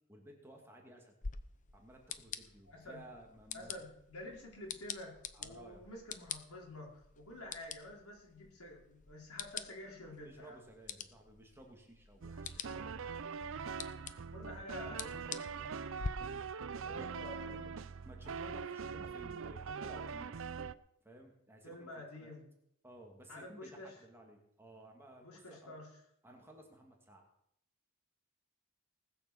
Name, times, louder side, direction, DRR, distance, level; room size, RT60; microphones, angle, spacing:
voice 1, 0.1-1.1 1.7-3.7 5.3-5.8 10.2-13.3 16.8-17.1 18.0-20.4 21.0-21.9 22.1-22.4 22.8-25.8 26.2-27.2, right 1 dB, 10° right, 1 dB, 2.3 m, -56 dB
sound 1, 1.2-16.1, left 6 dB, 35° left, 0.7 m, -47 dB
voice 2, 2.7-3.0 3.5-10.6 14.3-15.7 16.7-17.8 21.6-22.4 23.3-23.9 25.2-25.9, left 1 dB, 85° left, -1 dB, 4.8 m, -49 dB
sound 2, 12.2-20.7, right 5 dB, 60° right, 0.5 m, -42 dB
19.5 x 6.9 x 7.1 m, 0.75 s
head